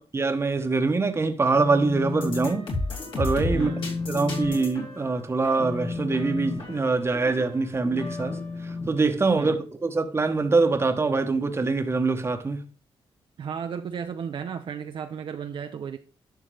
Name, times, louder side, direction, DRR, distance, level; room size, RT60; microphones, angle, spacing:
voice 1, 0.0-2.7 3.2-3.7 4.1-12.6, right 3 dB, 25° right, 1.0 m, -24 dB
Telephone, 1.5-2.6 2.9-3.2 3.5-9.6, left 3 dB, 35° left, 1.6 m, -34 dB
sound 1, 2.1-8.5, left 2 dB, 65° left, 3.0 m, -34 dB
voice 2, 3.5-3.8 9.4-9.6 13.4-16.0, right 7 dB, 60° right, 0.6 m, -34 dB
11.0 x 5.7 x 3.4 m
cardioid pair, 95°, 10 cm